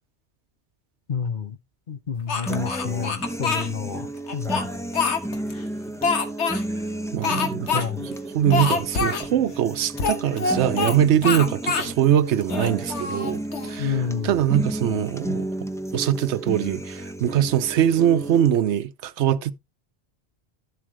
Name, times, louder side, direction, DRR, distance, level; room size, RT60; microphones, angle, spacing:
voice 1, 1.1-1.6 1.9-4.7 7.7-8.1 13.8-14.4, left 6 dB, 50° left, 1.0 m, -29 dB
Speech, 2.3-3.7 4.3-5.5 6.0-6.6 7.2-7.8 8.1-8.2 8.5-9.3 10.0-11.0 11.2-11.9 12.4-13.8, left 4 dB, 90° left, 1.7 m, -25 dB
sound 1, 2.5-18.5, right 1 dB, 5° left, 0.6 m, -32 dB
voice 2, 7.1-7.8 8.3-13.9 14.2-15.5 15.9-19.5, right 10 dB, 90° right, 1.0 m, -22 dB
12.5 x 7.4 x 3.1 m
omnidirectional pair, 1.1 m